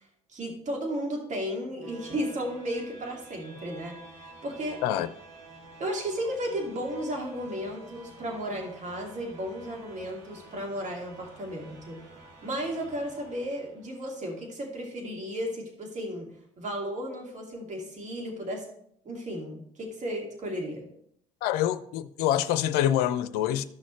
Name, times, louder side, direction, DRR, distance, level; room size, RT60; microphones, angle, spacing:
voice 1, 0.3-4.8 5.8-12.0 12.4-16.3 16.6-18.6 19.0-20.9, equal, 40° right, 2.2 m, -34 dB
sound 1, 1.1-14.1, right 3 dB, 60° right, 2.3 m, -50 dB
voice 2, 21.4-23.6, left 11 dB, 65° left, 0.5 m, -26 dB
13.0 x 6.2 x 3.1 m
figure-of-eight pair, 50°, 18 cm